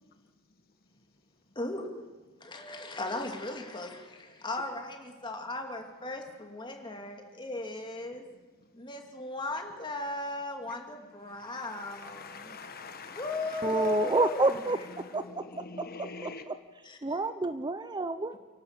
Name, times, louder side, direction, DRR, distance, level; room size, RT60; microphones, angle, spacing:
voice 1, 1.5-2.0 2.4-8.2 8.7-12.6 13.1-14.6 16.8-17.2, left 2 dB, 20° left, 3 dB, 2.6 m, -37 dB
voice 2, 11.8-13.9 15.6-16.4, left 4 dB, 45° left, 8 dB, 1.3 m, -44 dB
voice 3, 13.6-14.8 15.1-15.2 16.2-16.6 17.0-18.4, right 2 dB, 20° right, 12 dB, 0.5 m, -28 dB
29.0 x 12.0 x 8.3 m, 1.3 s
head